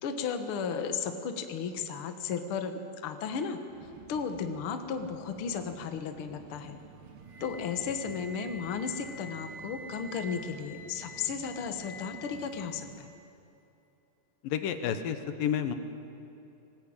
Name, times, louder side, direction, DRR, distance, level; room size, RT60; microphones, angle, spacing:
voice 1, 0.0-2.7 3.0-3.6 4.1-6.8 7.4-13.1, left 6 dB, 55° left, 7 dB, 1.5 m, -34 dB
sound 1, 3.7-13.0, right 7 dB, 90° right, 3.3 m, -52 dB
Wind instrument woodwind instrument, 7.3-13.3, left 1 dB, 45° right, 2.3 m, -47 dB
voice 2, 14.4-15.8, left 8 dB, 80° left, 8 dB, 2.7 m, -30 dB
20.0 x 18.5 x 8.8 m, 2.8 s
omnidirectional pair, 4.0 m